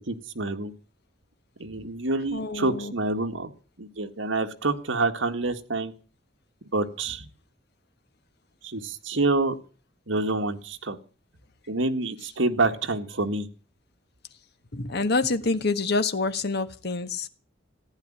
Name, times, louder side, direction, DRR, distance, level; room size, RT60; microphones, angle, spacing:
voice 1, 0.1-0.7 1.6-3.5 3.8-5.9 6.7-7.3 8.6-9.6 10.1-11.0 11.7-13.5, right 2 dB, 75° right, 5 dB, 1.8 m, -27 dB
voice 2, 2.3-2.9 14.7-17.3, left 3 dB, 55° left, 9 dB, 1.5 m, -27 dB
15.5 x 10.0 x 8.7 m, 0.37 s
head